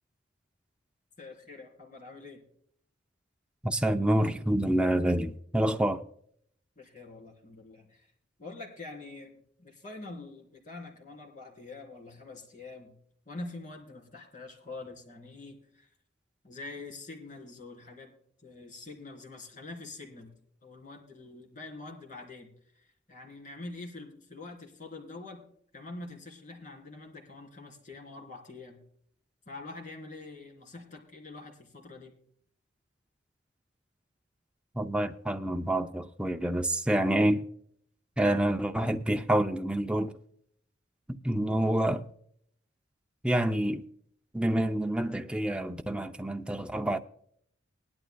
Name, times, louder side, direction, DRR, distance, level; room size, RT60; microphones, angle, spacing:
voice 1, 1.2-2.4 6.8-8.1 8.4-13.0 13.3-15.9 16.4-18.1 18.4-20.3 20.6-25.5 25.7-28.8 29.5-32.1, left 2 dB, 40° left, 3.5 m, -45 dB
voice 2, 3.6-6.0 34.8-37.4 38.2-40.1 41.1-42.0 43.2-43.8 44.3-47.0, right 1 dB, 5° right, 0.5 m, -27 dB
20.5 x 11.5 x 2.2 m
head